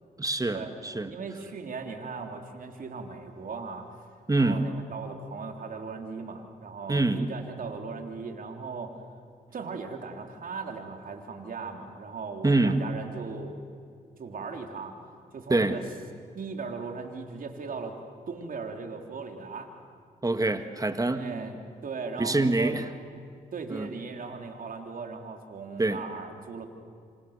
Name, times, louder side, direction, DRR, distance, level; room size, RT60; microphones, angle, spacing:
voice 1, 0.2-1.1 4.3-4.6 6.9-7.2 12.4-12.8 15.5-15.8 20.2-21.2 22.2-22.9 23.7-23.9 25.8-26.0, right 2 dB, 20° right, 9 dB, 2.0 m, -25 dB
voice 2, 1.1-4.0 4.4-9.0 9.5-13.6 14.2-14.9 15.3-15.8 16.3-18.0 18.3-19.7 21.1-21.6 21.8-22.8 23.5-26.7, right 4 dB, 60° right, 4 dB, 3.5 m, -38 dB
27.5 x 26.5 x 6.7 m, 2.3 s
cardioid pair, 60°, 16 cm